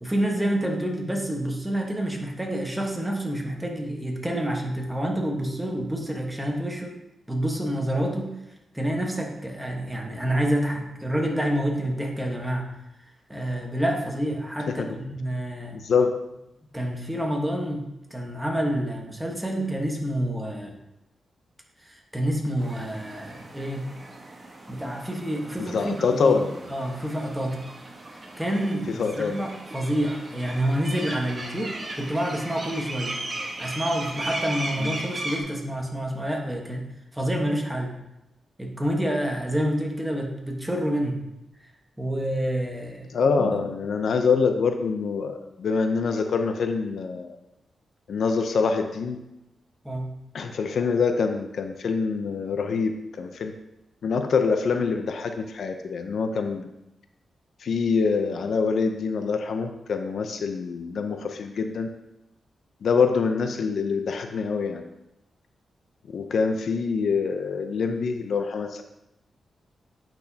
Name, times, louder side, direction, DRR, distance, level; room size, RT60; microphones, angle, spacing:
voice 1, 0.0-7.0 7.3-8.4 8.7-12.7 13.3-15.8 16.7-20.7 21.8-23.8 24.7-26.4 26.7-27.6 28.1-33.2 33.6-36.8 37.1-37.9 38.6-41.2 41.6-41.7 42.0-43.6 49.8-50.1, right 1 dB, 10° right, 0 dB, 1.2 m, -28 dB
voice 2, 15.7-16.1 25.6-26.6 29.0-29.5 34.8-35.0 43.1-47.4 48.1-49.2 50.3-53.5 54.0-56.7 57.6-61.9 62.8-64.8 66.1-68.8, left 5 dB, 70° left, 6 dB, 0.6 m, -25 dB
sound 1, 22.6-35.4, right 1 dB, 30° right, 1.2 m, -37 dB
8.6 x 6.0 x 2.8 m, 0.90 s
wide cardioid pair, 105°, 0 cm